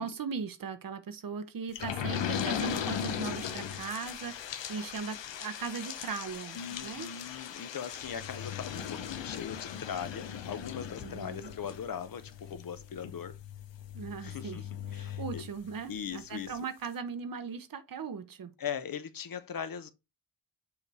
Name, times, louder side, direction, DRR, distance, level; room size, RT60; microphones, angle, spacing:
voice 1, 0.0-7.1 11.0-11.5 13.9-14.6 14.9-18.5, right 5 dB, 50° right, 0.8 m, -39 dB
sound 1, 1.7-16.1 16.5-16.6 16.8-16.9, left 8 dB, 85° left, 0.9 m, -38 dB
voice 2, 6.5-13.4 14.2-15.4 15.9-16.5 18.6-19.9, left 8 dB, 55° left, 0.7 m, -40 dB
6.9 x 3.3 x 4.1 m
wide cardioid pair, 135°, 43 cm